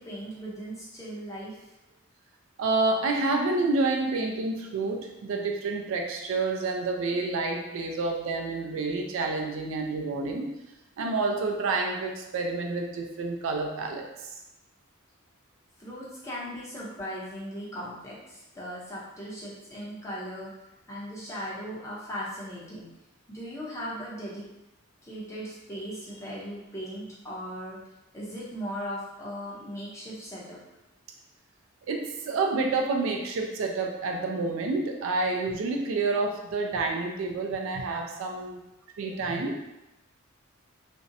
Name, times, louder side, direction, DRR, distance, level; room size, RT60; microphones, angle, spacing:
voice 1, 0.0-1.6 4.4-4.5 15.8-20.5 20.9-22.9 23.3-24.4 25.0-27.8 28.1-30.6, equal, 15° left, -7 dB, 0.6 m, -38 dB
voice 2, 2.6-10.5 11.0-14.3 31.9-38.6 39.0-39.6, right 3 dB, 65° right, 2 dB, 0.3 m, -29 dB
2.5 x 2.0 x 2.6 m, 0.93 s
head